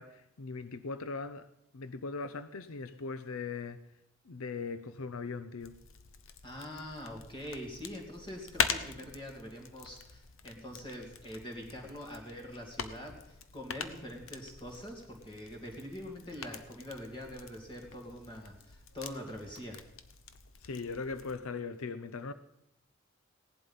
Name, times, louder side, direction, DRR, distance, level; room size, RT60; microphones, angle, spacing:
voice 1, 0.0-1.5 1.7-3.8 4.2-5.8 20.6-22.3, left 4 dB, 85° left, 0.6 m, -39 dB
sound 1, 5.6-21.4, left 6 dB, 70° left, 1.0 m, -42 dB
voice 2, 6.4-19.8, left 1 dB, 25° left, 2.6 m, -44 dB
17.0 x 11.0 x 5.6 m
head